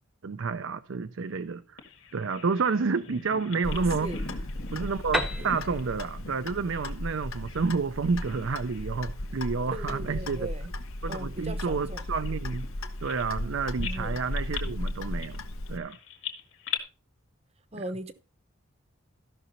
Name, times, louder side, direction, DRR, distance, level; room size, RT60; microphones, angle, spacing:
voice 1, 0.2-1.8 2.1-4.1 4.7-10.5 11.0-12.7 13.0-15.4 15.7-16.0 17.7-17.8, right 4 dB, 70° right, 0.5 m, -30 dB
Bird vocalization bird call bird song, 1.8-7.7 8.0-8.9 9.2-9.4 10.0-13.5 13.8-16.8, left 6 dB, 60° left, 2.0 m, -42 dB
Clock, 3.6-15.8, left 1 dB, 85° left, 1.1 m, -36 dB
voice 2, 3.7-4.2 5.3-5.5 9.7-10.7 11.1-12.0 13.8-14.2 17.7-18.1, right 1 dB, 30° right, 0.8 m, -39 dB
Piano, 5.1-8.8, equal, ahead, 0.8 m, -35 dB
14.5 x 6.1 x 4.1 m
head